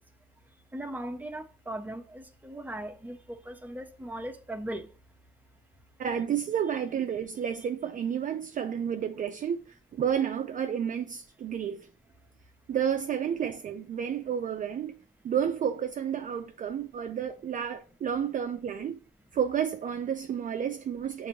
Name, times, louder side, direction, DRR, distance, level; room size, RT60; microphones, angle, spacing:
voice 1, 0.7-3.2 3.5-4.9, right 1 dB, 10° right, 0.7 m, -38 dB
voice 2, 6.0-9.6 9.9-11.9 12.7-15.0 15.2-19.0 19.3-21.3, right 8 dB, 40° right, 0.4 m, -31 dB
6.4 x 2.6 x 3.1 m
cardioid pair, 90°, 20 cm